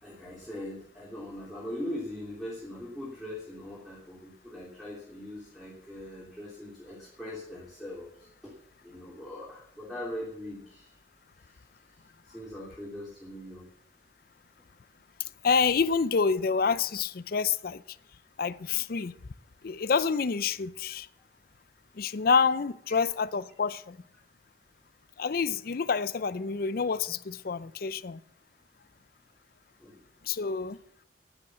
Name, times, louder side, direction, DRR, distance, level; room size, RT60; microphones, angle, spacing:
voice 1, 0.0-8.5 8.8-10.9 11.4-11.6 11.9-13.7 22.9-23.0 29.8-30.0, left 1 dB, ahead, 3.0 m, -41 dB
voice 2, 15.4-17.8 18.4-19.1 19.6-21.1 22.0-24.0 25.2-28.2 30.2-30.8, left 5 dB, 50° left, 0.5 m, -27 dB
10.5 x 8.7 x 7.4 m
head